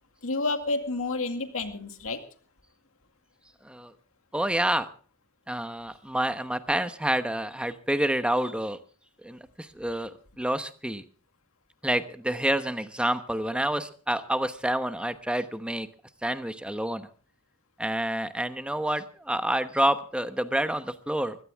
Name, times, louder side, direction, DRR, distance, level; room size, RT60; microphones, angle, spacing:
voice 1, 0.2-2.2, left 3 dB, 70° left, 6 dB, 2.2 m, -30 dB
voice 2, 4.3-4.9 5.5-8.8 9.2-11.0 11.8-15.9 16.2-17.1 17.8-21.4, right 1 dB, 5° right, 10 dB, 1.0 m, -28 dB
21.5 x 16.5 x 3.5 m, 0.41 s
head